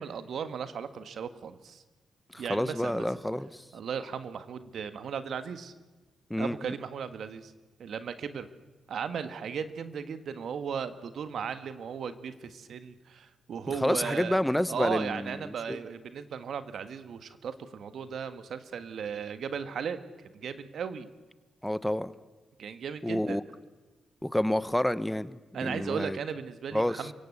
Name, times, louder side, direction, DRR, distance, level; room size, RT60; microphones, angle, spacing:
voice 1, 0.0-1.8 2.4-3.1 3.7-5.7 6.4-7.5 7.8-8.5 8.9-14.4 14.7-20.0 20.2-21.1 22.6-23.4 25.5-27.1, right 7 dB, 70° right, 11 dB, 1.6 m, -36 dB
voice 2, 2.3-3.6 6.3-6.7 13.8-15.8 21.6-22.1 23.0-23.4 24.2-26.2 26.7-27.0, left 1 dB, 10° left, 15 dB, 1.1 m, -29 dB
28.5 x 17.0 x 8.3 m, 1.2 s
supercardioid pair, 45°, 0 cm